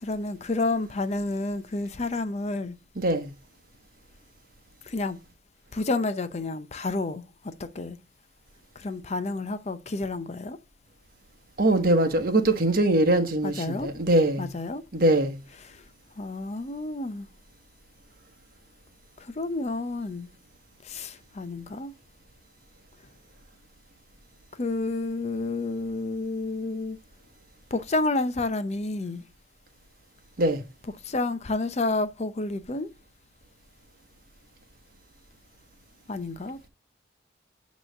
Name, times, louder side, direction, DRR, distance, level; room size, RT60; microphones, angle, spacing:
voice 1, 0.0-2.8 4.8-5.2 5.7-8.0 8.8-10.6 13.4-13.9 14.4-14.8 15.6-15.8 16.2-17.3 19.2-20.3 20.8-21.9 24.5-27.0 27.7-29.2 31.0-32.9 36.1-36.7, left 2 dB, 35° left, 0.6 m, -30 dB
voice 2, 3.0-3.3 11.6-14.5 14.9-15.4 30.4-30.6, right 1 dB, 50° right, 1.2 m, -22 dB
8.8 x 3.1 x 6.3 m
head